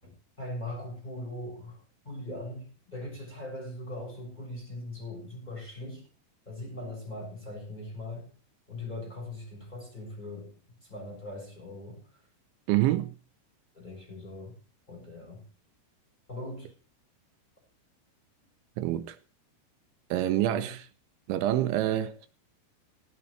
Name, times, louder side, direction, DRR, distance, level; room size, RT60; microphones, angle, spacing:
voice 1, 0.0-6.1 6.5-8.3 8.7-12.0 12.9-13.0 13.7-14.6 14.9-15.4 16.3-16.7 20.4-20.7, left 1 dB, 10° left, 6.8 m, -40 dB
voice 2, 12.7-13.1 18.8-19.2 20.1-20.9 21.3-22.3, right 14 dB, 80° right, 2.8 m, -27 dB
16.5 x 15.5 x 3.2 m
omnidirectional pair, 6.0 m